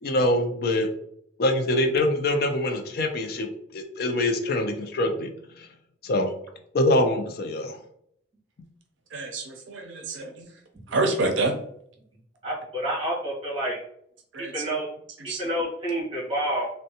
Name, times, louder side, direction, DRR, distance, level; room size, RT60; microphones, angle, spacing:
voice 1, 0.0-0.9 1.4-5.3 5.6-5.7 6.0-6.3 6.7-7.8, left 1 dB, 50° left, 5 dB, 0.4 m, -24 dB
voice 2, 9.1-10.3 10.9-11.5 14.3-14.5 15.3-15.4, right 2 dB, 75° right, 4 dB, 0.5 m, -27 dB
voice 3, 12.4-13.8 14.4-14.9 15.4-16.7, right 1 dB, 30° right, -5 dB, 1.4 m, -28 dB
3.5 x 2.1 x 2.7 m, 0.69 s
head